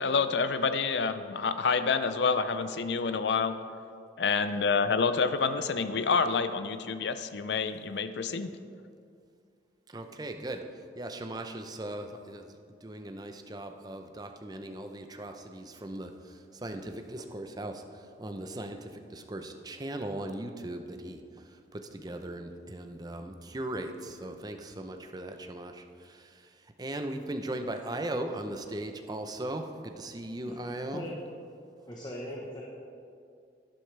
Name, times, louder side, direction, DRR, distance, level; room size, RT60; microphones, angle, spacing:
voice 1, 0.0-3.6 4.2-8.6, left 5 dB, 75° left, 11 dB, 0.5 m, -28 dB
voice 2, 9.9-10.6 11.0-12.5 12.8-16.1 16.6-17.8 18.2-21.2 21.7-26.3 26.8-31.1, right 1 dB, 25° right, 5 dB, 0.6 m, -38 dB
voice 3, 31.9-32.6, left 1 dB, 25° left, -2 dB, 1.0 m, -38 dB
11.5 x 11.0 x 3.3 m, 2.3 s
head